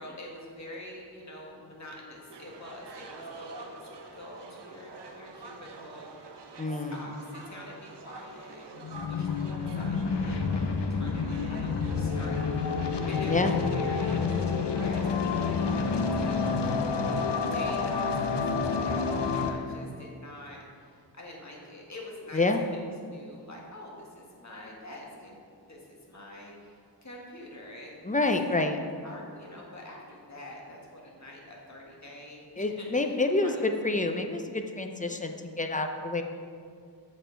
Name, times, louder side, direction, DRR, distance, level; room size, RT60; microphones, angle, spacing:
voice 1, 0.0-6.2 6.7-8.7 9.0-10.5 10.9-12.8 13.1-13.5 13.7-16.6 17.5-28.5 29.0-34.0, left 1 dB, 40° left, -2 dB, 1.7 m, -46 dB
sound 1, 2.3-16.5, right 3 dB, 80° right, 0.8 m, -47 dB
voice 2, 6.6-7.0 13.3-13.6 22.3-22.6 28.0-28.8 32.6-36.2, left 2 dB, 20° left, 5 dB, 0.6 m, -28 dB
sound 2, 8.8-19.5, left 4 dB, 85° left, 0.7 m, -28 dB
7.6 x 6.3 x 4.5 m, 2.2 s
wide cardioid pair, 80°, 41 cm